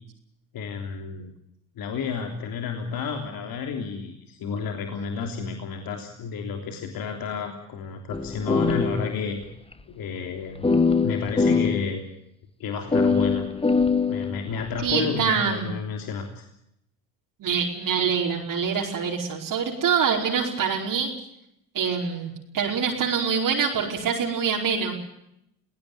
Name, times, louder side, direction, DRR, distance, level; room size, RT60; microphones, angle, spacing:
voice 1, 0.5-1.3 1.7-9.4 9.9-12.0 12.6-13.5 14.1-16.4, left 5 dB, 65° left, 4 dB, 3.4 m, -31 dB
sound 1, 8.1-9.4 9.7-9.8 10.6-11.9 12.9-14.9, left 4 dB, 15° left, 1.3 m, -23 dB
voice 2, 14.8-15.7 17.4-21.1 21.7-25.0, right 6 dB, 60° right, -1 dB, 4.9 m, -25 dB
21.5 x 18.0 x 9.4 m, 0.79 s
supercardioid pair, 75°, 38 cm